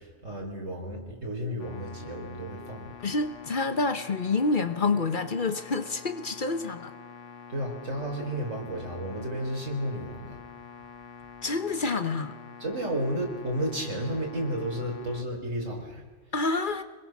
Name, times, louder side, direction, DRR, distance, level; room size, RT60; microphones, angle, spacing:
voice 1, 0.0-3.0 7.5-10.4 12.6-16.1, equal, 90° right, 1 dB, 4.5 m, -32 dB
sound 1, 1.6-15.2, left 7 dB, 70° left, 1.5 m, -46 dB
voice 2, 3.0-6.9 11.4-12.4 16.3-16.8, left 3 dB, 45° left, 10 dB, 1.1 m, -28 dB
26.0 x 21.5 x 6.0 m, 1.4 s
omnidirectional pair, 1.3 m